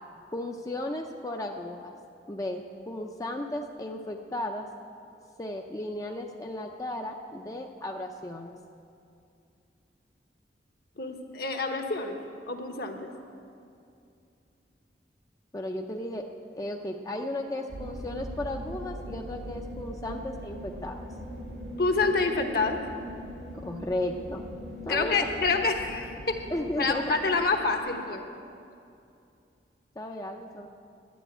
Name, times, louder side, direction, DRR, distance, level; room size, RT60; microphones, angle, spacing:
voice 1, 0.3-1.9 2.3-2.6 2.9-4.7 5.4-8.5 15.5-16.2 16.5-20.9 23.6-24.5 24.8-25.2 26.5-27.0 30.0-30.7, left 1 dB, 20° left, 2 dB, 0.5 m, -34 dB
voice 2, 11.0-12.2 12.5-13.1 21.8-22.8 24.9-26.4 26.8-28.2, left 3 dB, 60° left, 4 dB, 1.2 m, -27 dB
sound 1, 17.7-27.8, equal, 85° right, 2.4 m, -41 dB
11.5 x 10.0 x 8.0 m, 2.5 s
head